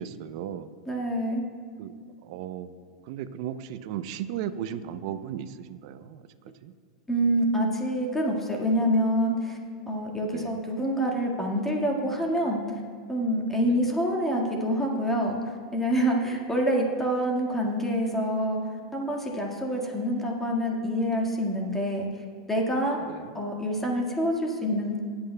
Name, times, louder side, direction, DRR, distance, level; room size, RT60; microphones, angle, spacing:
voice 1, 0.0-0.7 1.8-1.9 2.2-2.7 3.1-6.2 6.6-6.7 10.3-10.6 13.7-13.8 23.0-23.4, right 10 dB, 60° right, 12 dB, 0.6 m, -36 dB
voice 2, 0.9-1.4 7.1-9.6 9.9-12.6 13.1-15.4 15.7-18.6 18.9-22.1 22.5-23.0 23.3-25.0, equal, 10° left, -1 dB, 1.7 m, -26 dB
20.0 x 8.7 x 2.2 m, 2.1 s
supercardioid pair, 125°, 4 cm